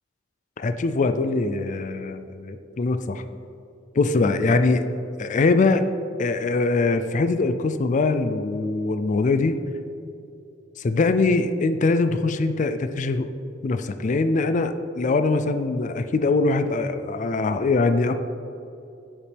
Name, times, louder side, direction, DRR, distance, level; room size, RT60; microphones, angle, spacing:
voice 1, 0.6-3.2 4.0-4.9 5.2-5.8 6.2-9.6 10.8-13.3 13.6-18.2, left 3 dB, 40° left, 9 dB, 0.4 m, -22 dB
9.2 x 7.2 x 3.5 m, 2.7 s
head